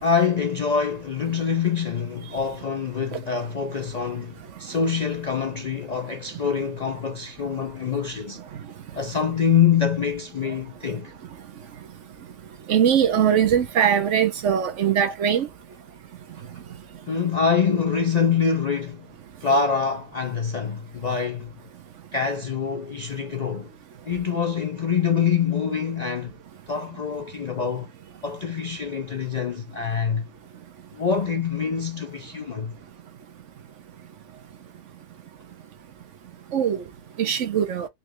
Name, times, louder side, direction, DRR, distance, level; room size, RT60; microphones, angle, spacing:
voice 1, 0.0-8.4 8.9-11.1 17.0-19.1 19.4-21.5 22.1-23.7 24.1-26.3 26.7-27.9 28.2-30.3 30.9-32.7, left 6 dB, 50° left, 0.5 m, -25 dB
voice 2, 12.7-15.5 36.5-36.8 37.2-37.9, right 8 dB, 70° right, 1.1 m, -21 dB
4.2 x 3.1 x 3.0 m
omnidirectional pair, 1.3 m